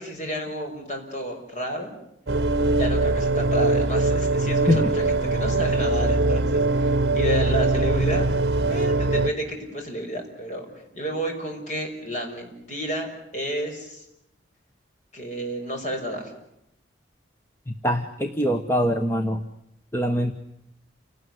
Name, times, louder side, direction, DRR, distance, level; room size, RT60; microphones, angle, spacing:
voice 1, 0.0-1.9 2.7-8.3 8.7-10.7 10.9-14.0 15.1-16.3, equal, 40° left, 2 dB, 6.5 m, -31 dB
sound 1, 2.3-9.3, right 2 dB, 55° right, 1.2 m, -22 dB
voice 2, 4.7-5.0 17.7-19.4 19.9-20.3, equal, 10° left, 6 dB, 1.2 m, -23 dB
29.0 x 19.0 x 9.8 m, 0.81 s
head